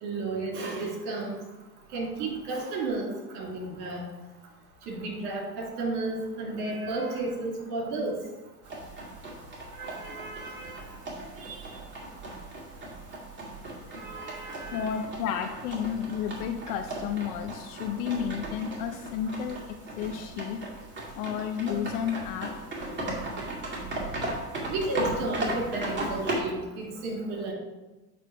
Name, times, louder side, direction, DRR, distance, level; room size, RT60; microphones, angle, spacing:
voice 1, 0.0-1.4 1.9-4.1 4.8-8.2 9.7-10.8 11.4-11.8 13.9-14.9 24.7-27.5, right 2 dB, 60° right, -1 dB, 2.4 m, -33 dB
sound 1, 8.6-26.4, right 1 dB, 25° right, 2.3 m, -37 dB
voice 2, 14.7-19.6 20.0-20.6 21.2-22.5, left 8 dB, 65° left, 5 dB, 0.7 m, -32 dB
8.4 x 3.2 x 5.0 m, 1.1 s
hypercardioid pair, 95°, 47 cm